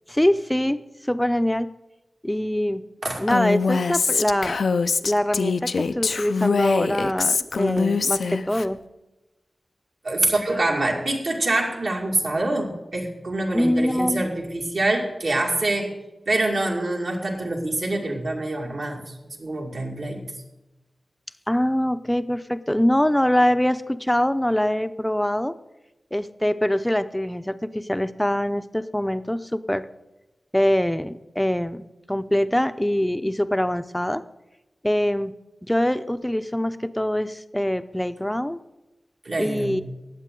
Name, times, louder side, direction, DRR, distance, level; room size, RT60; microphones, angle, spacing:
voice 1, 0.1-1.7 2.2-2.8 3.2-4.6 5.0-8.8 13.5-14.3 21.5-25.5 26.1-29.9 30.5-34.2 34.8-35.3 35.6-38.6 39.4-39.8, left 1 dB, 10° left, 12 dB, 0.5 m, -23 dB
Female speech woman speaking, 3.3-8.7, left 4 dB, 90° left, 0.4 m, -23 dB
voice 2, 10.0-16.0 16.3-20.3 39.2-39.8, right 2 dB, 70° right, 0 dB, 2.2 m, -25 dB
19.0 x 7.5 x 3.7 m, 1.0 s
wide cardioid pair, 75°, 0 cm